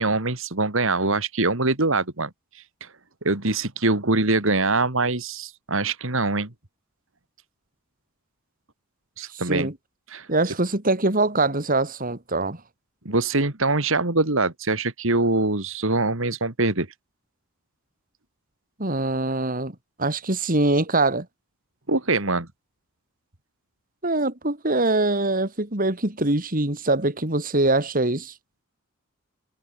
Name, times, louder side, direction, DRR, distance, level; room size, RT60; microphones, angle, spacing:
voice 1, 0.0-2.3 2.5-2.9 3.2-6.5 9.2-9.7 10.1-10.3 13.0-16.9 21.9-22.5, right 3 dB, 65° right, 2.7 m, -23 dB
voice 2, 9.3-9.7 10.3-12.6 18.8-19.7 20.0-21.2 24.0-28.3, right 2 dB, 40° right, 3.5 m, -23 dB
head